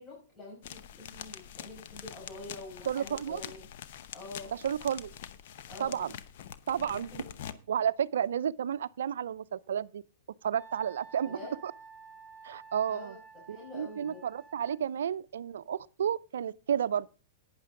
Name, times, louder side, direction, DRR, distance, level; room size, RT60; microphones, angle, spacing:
voice 1, 0.0-3.7 4.1-4.6 5.7-6.1 6.8-7.6 11.2-11.6 12.9-14.3, left 3 dB, 30° left, 5.8 m, -47 dB
sound 1, 0.6-7.5, left 10 dB, 60° left, 0.8 m, -45 dB
voice 2, 2.9-3.4 4.6-5.1 5.8-6.1 6.7-7.2 7.7-10.0 10.4-11.4 11.6-11.7 12.4-13.2 13.5-17.1, right 8 dB, 70° right, 0.5 m, -31 dB
Wind instrument woodwind instrument, 10.6-14.8, right 5 dB, 15° left, 2.5 m, -52 dB
11.5 x 9.7 x 3.7 m
hypercardioid pair, 110°, 0 cm